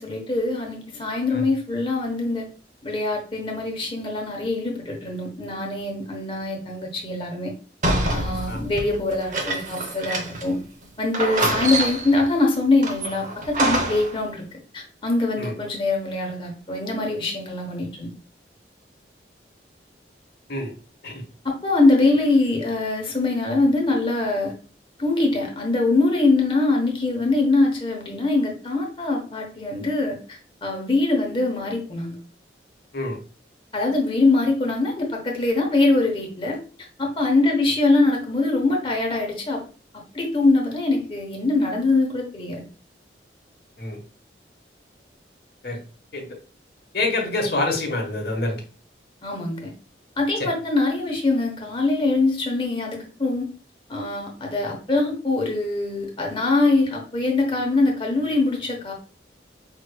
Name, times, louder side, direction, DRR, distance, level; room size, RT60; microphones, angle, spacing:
voice 1, 0.0-2.4 2.8-7.5 8.1-10.6 11.0-14.5 14.7-18.1 21.4-24.5 25.0-32.2 33.7-36.6 37.0-39.6 40.1-42.6 49.2-49.7 50.2-53.5 53.9-58.9, left 2 dB, 30° left, 1 dB, 1.0 m, -23 dB
sound 1, 7.8-10.6 10.8-10.9 11.1-12.2 12.8-14.2, right 2 dB, 45° right, 0.8 m, -26 dB
voice 2, 46.9-48.6 50.4-50.5, left 2 dB, 60° left, 2 dB, 1.1 m, -26 dB
5.4 x 3.2 x 2.2 m, 0.37 s
head